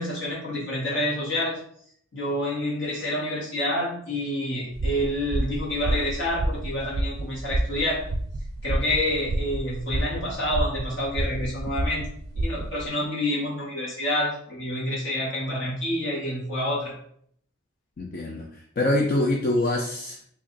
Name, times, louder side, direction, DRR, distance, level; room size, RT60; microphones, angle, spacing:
voice 1, 0.0-1.6 2.1-8.0 8.6-12.0 12.4-17.0, left 1 dB, 60° left, -5 dB, 1.3 m, -28 dB
sound 1, 4.7-12.9, right 1 dB, 50° right, 0.4 m, -29 dB
voice 2, 18.0-18.5 18.8-20.2, left 1 dB, 45° left, 0 dB, 0.4 m, -24 dB
3.2 x 2.5 x 3.8 m, 0.64 s
head